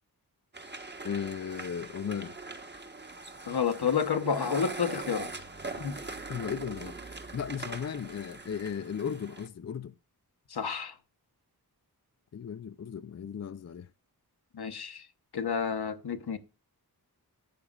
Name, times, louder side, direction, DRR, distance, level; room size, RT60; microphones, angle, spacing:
sound 1, 0.5-9.5, right 3 dB, 25° right, 1.2 m, -42 dB
voice 1, 1.0-2.3 6.3-7.0 7.3-9.9 12.3-13.9, left 7 dB, 45° left, 0.5 m, -36 dB
voice 2, 3.5-5.3 5.8-5.9 10.5-10.9 14.5-15.1 15.3-16.4, left 6 dB, 75° left, 1.1 m, -30 dB
13.0 x 8.4 x 2.4 m
wide cardioid pair, 80°, 39 cm